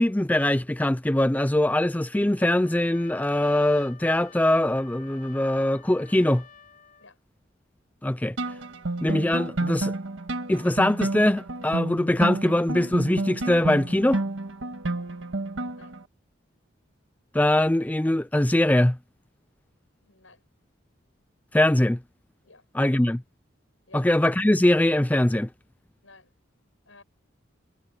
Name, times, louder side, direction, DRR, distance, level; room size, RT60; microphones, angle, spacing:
voice 1, 0.0-6.4 8.0-8.4 9.0-10.0 10.5-14.2 17.3-19.0 21.5-22.0 22.7-23.2 23.9-25.5, left 1 dB, 10° left, 0.4 m, -22 dB
Trumpet, 2.3-7.1, left 6 dB, 40° left, 4.9 m, -50 dB
sound 1, 8.4-16.0, right 2 dB, 75° right, 1.6 m, -30 dB
voice 2, 20.0-20.4 22.4-22.6 23.9-24.1 26.0-26.3 26.9-27.0, left 3 dB, 85° left, 8.0 m, -53 dB
head